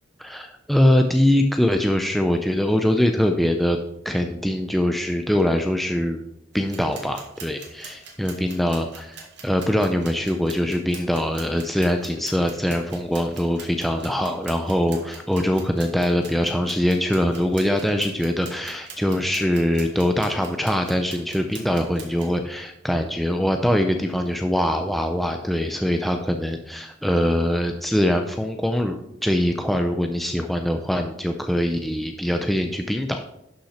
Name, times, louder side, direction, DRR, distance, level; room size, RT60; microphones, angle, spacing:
voice 1, 0.2-3.8 4.0-6.2 6.5-29.0 29.2-33.2, equal, ahead, 5 dB, 0.5 m, -23 dB
sound 1, 6.5-22.3, right 5 dB, 65° right, 2.1 m, -44 dB
11.5 x 5.9 x 4.3 m, 0.80 s
head